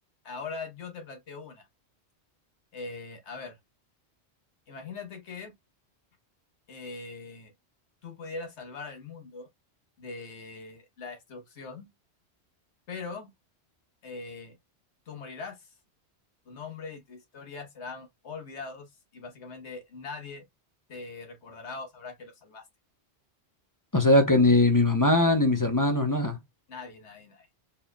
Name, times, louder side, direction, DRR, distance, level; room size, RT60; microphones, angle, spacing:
voice 1, 0.2-1.7 2.7-3.6 4.7-5.5 6.7-7.5 8.0-9.5 10.0-11.9 12.9-13.3 14.0-14.6 15.1-15.7 16.5-20.4 20.9-22.6 26.7-27.5, left 4 dB, 90° left, 1.5 m, -41 dB
voice 2, 23.9-26.4, left 2 dB, 20° left, 0.6 m, -21 dB
4.2 x 3.6 x 2.2 m
omnidirectional pair, 1.1 m